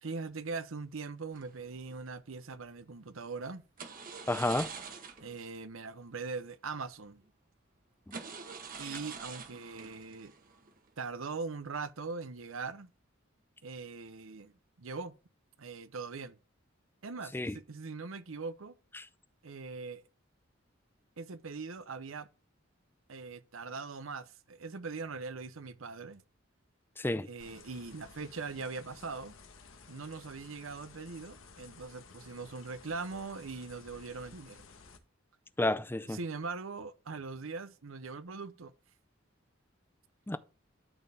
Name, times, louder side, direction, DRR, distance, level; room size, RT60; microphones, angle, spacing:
voice 1, 0.0-3.6 5.2-7.2 8.8-10.3 11.0-12.9 13.6-14.5 14.8-15.2 15.6-16.4 17.0-17.4 17.7-18.8 19.4-20.0 21.2-22.3 23.1-26.2 27.3-29.3 29.9-34.7 36.1-38.7, right 4 dB, 85° right, 0.8 m, -41 dB
sound 1, 1.3-2.1 3.8-5.6 5.8-5.9 6.4-6.5 7.2-7.3 8.0-11.2 11.5-11.9, right 5 dB, 45° right, 1.3 m, -46 dB
voice 2, 4.3-4.7 8.1-8.2 17.3-17.6 18.9-19.0 27.0-27.3 35.6-36.2 40.3-40.4, left 1 dB, 10° left, 0.5 m, -31 dB
sound 2, 27.4-35.0, left 4 dB, 90° left, 1.4 m, -55 dB
12.5 x 4.4 x 3.5 m
head